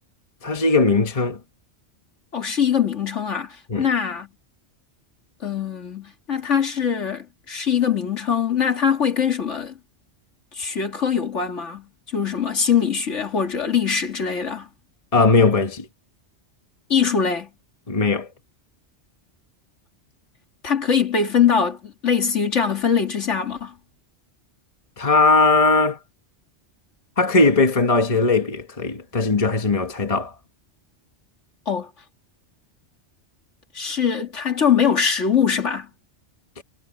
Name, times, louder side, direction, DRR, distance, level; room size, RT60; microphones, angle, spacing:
voice 1, 0.4-1.4 3.7-3.9 15.1-15.9 17.9-18.3 25.0-26.0 27.2-30.3 36.6-36.7, left 3 dB, 30° left, 1.3 m, -19 dB
voice 2, 2.3-4.3 5.4-9.7 10.5-14.7 16.9-17.5 20.6-23.7 31.7-31.9 33.7-35.9, left 7 dB, 85° left, 2.5 m, -22 dB
omnidirectional pair, 1.2 m